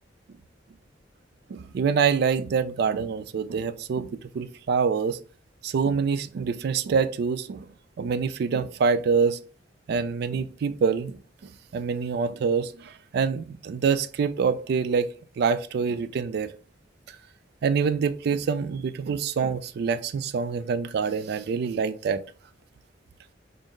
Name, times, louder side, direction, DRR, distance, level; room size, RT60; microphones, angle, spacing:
voice 1, 1.5-5.2 5.6-7.7 8.0-9.4 9.9-11.2 11.7-15.1 15.4-16.5 17.6-22.2, right 5 dB, 60° right, 0.3 m, -26 dB
3.7 x 2.6 x 3.1 m
head